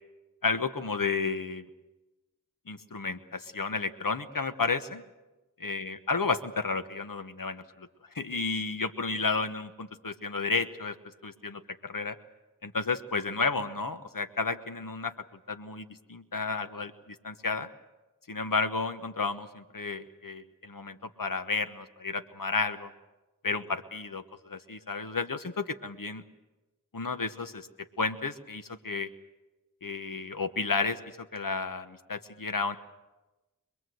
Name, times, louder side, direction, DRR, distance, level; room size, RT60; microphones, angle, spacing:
voice 1, 0.4-1.6 2.7-5.0 5.6-7.9 8.1-10.9 11.2-12.2 12.6-15.1 15.5-17.7 18.3-22.9 23.4-26.2 26.9-27.7 28.0-29.1 29.8-32.8, left 4 dB, 80° left, 9 dB, 1.3 m, -32 dB
25.5 x 21.0 x 7.9 m, 1.1 s
wide cardioid pair, 40°, 33 cm